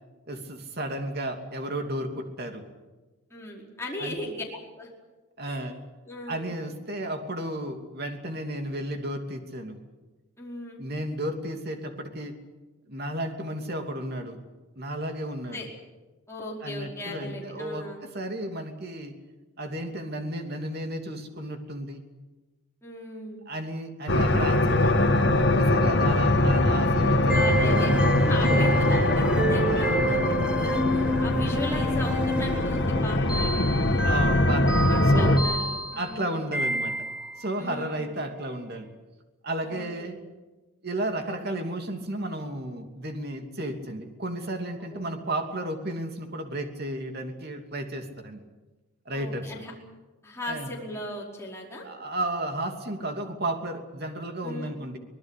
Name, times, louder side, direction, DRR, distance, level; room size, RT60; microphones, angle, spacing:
voice 1, 0.3-2.6 4.0-4.2 5.4-5.8 6.3-9.8 10.8-12.3 12.9-14.4 14.8-15.7 16.6-19.1 19.6-22.0 23.5-27.9 28.4-28.9 29.8-30.4 34.0-34.8 35.1-35.4 36.0-36.9 37.4-38.9 39.4-40.2 40.8-48.4 49.0-49.6 50.5-50.7 51.8-55.0, right 1 dB, 45° right, 4 dB, 2.9 m, -33 dB
voice 2, 3.3-4.4 4.8-4.9 5.4-5.6 6.0-6.5 10.4-10.8 15.5-15.7 16.3-18.0 22.8-23.4 27.3-27.9 28.2-33.6 34.9-36.5 37.6-38.1 39.6-40.1 44.9-45.1 49.1-49.7 50.2-51.8 54.4-54.8, left 1 dB, 10° left, -3 dB, 5.0 m, -37 dB
sound 1, 24.1-35.4, left 1 dB, 55° left, 1.9 m, -22 dB
sound 2, 27.3-37.5, right 1 dB, 5° right, 1.2 m, -29 dB
25.0 x 19.5 x 8.5 m, 1.2 s
head